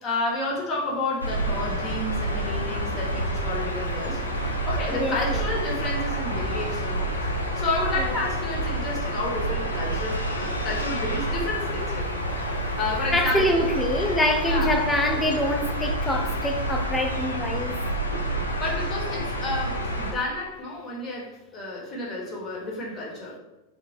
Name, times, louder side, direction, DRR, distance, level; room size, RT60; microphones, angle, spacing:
voice 1, 0.0-12.1 12.7-13.6 14.4-14.8 18.6-23.4, left 2 dB, 30° left, -3 dB, 0.8 m, -31 dB
sound 1, 1.2-20.1, right 1 dB, 85° left, 0.4 m, -28 dB
voice 2, 4.9-5.4 8.0-8.1 13.1-17.8, left 1 dB, 10° left, 4 dB, 0.3 m, -25 dB
2.5 x 2.0 x 3.3 m, 0.96 s
figure-of-eight pair, 90°, 0 cm